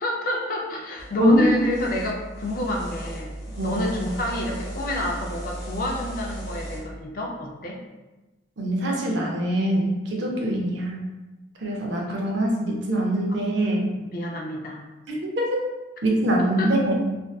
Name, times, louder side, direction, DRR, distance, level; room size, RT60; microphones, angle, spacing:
voice 1, 0.0-3.3 3.6-7.8 10.3-10.4 14.0-14.8 16.6-16.7, left 1 dB, 45° left, 0 dB, 0.4 m, -29 dB
sound 1, 1.0-6.8, right 1 dB, 75° left, 0.9 m, -36 dB
voice 2, 1.2-1.6 3.6-3.7 8.6-11.0 11.6-13.9 15.1-15.6 16.0-17.0, equal, 65° right, -1 dB, 0.5 m, -23 dB
2.5 x 2.2 x 2.2 m, 1.1 s
head